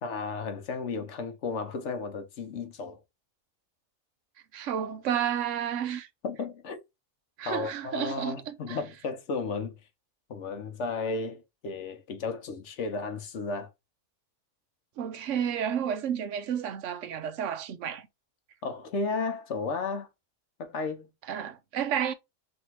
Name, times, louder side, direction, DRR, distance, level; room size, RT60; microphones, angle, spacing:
voice 1, 0.0-3.0 6.2-6.8 7.5-9.8 10.3-13.7 18.6-20.1 20.6-21.1, left 4 dB, 60° left, 1.0 m, -33 dB
voice 2, 4.5-6.1 7.4-8.8 15.0-18.0 21.3-22.1, right 9 dB, 70° right, 0.9 m, -31 dB
3.5 x 2.7 x 4.4 m
omnidirectional pair, 1.4 m